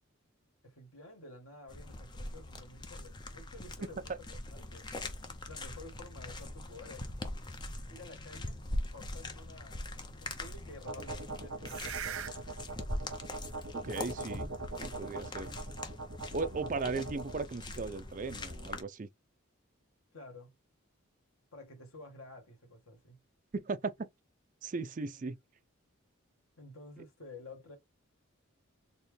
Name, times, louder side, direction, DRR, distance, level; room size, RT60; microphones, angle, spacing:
voice 1, 0.6-4.9 5.5-7.1 7.9-8.6 8.9-12.6 20.1-20.5 21.5-23.2 25.1-25.2 26.6-27.8, left 2 dB, 80° left, 1.6 m, -51 dB
sound 1, 1.7-18.8, left 1 dB, 20° left, 0.6 m, -42 dB
sound 2, 10.9-17.4, right 3 dB, 80° right, 0.9 m, -41 dB
voice 2, 13.8-14.5 14.8-15.6 16.3-19.1 23.5-24.1 24.6-25.4, right 4 dB, 35° right, 0.4 m, -37 dB
4.2 x 2.2 x 3.2 m
head